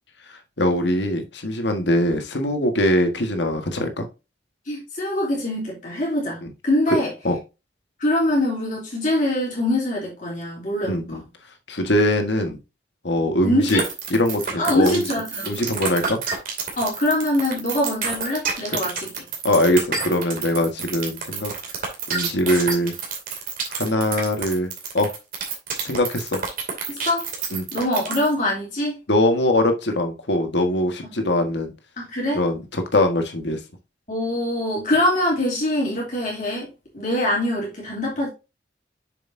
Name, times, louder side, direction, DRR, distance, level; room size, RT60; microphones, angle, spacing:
voice 1, 0.6-4.1 6.4-6.5 6.9-7.0 7.2-7.4 10.8-11.2 11.7-12.6 13.0-13.8 14.1-15.1 15.4-16.2 19.4-21.5 22.1-22.9 23.7-24.7 24.9-25.1 25.8-26.4 27.5-27.6 29.1-31.7 32.3-33.6, left 1 dB, 75° left, 1.5 m, -22 dB
voice 2, 4.7-7.1 8.0-11.2 13.4-13.8 14.6-15.6 16.8-19.1 26.9-27.3 27.7-29.0 32.0-32.4 34.1-36.7 36.9-38.3, left 1 dB, 45° left, 2.9 m, -23 dB
sound 1, 13.7-28.3, right 6 dB, 50° right, 2.5 m, -28 dB
7.2 x 6.7 x 2.6 m
head